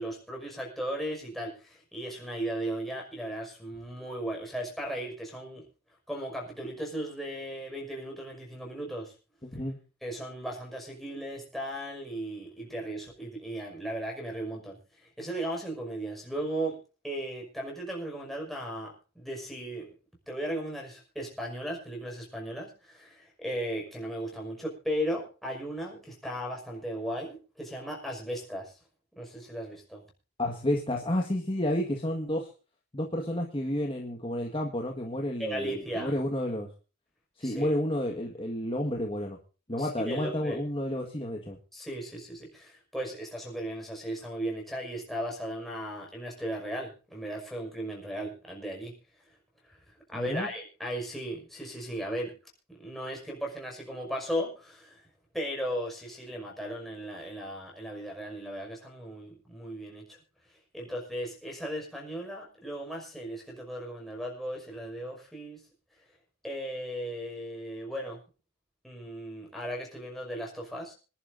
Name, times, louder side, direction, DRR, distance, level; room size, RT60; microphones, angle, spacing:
voice 1, 0.0-5.6 6.1-9.1 10.0-16.8 17.0-19.9 20.3-28.8 29.2-30.0 35.4-36.2 37.4-37.7 39.8-40.6 41.7-49.0 49.7-49.8 50.1-52.3 52.7-55.0 55.3-60.2 60.7-65.6 66.4-68.2 68.8-70.9, right 1 dB, ahead, -2 dB, 5.7 m, -36 dB
voice 2, 9.4-9.8 30.4-32.5 32.9-36.7 37.4-39.4 39.7-41.6 50.1-50.5, left 1 dB, 25° left, 1 dB, 1.7 m, -31 dB
26.5 x 11.0 x 2.7 m, 0.35 s
head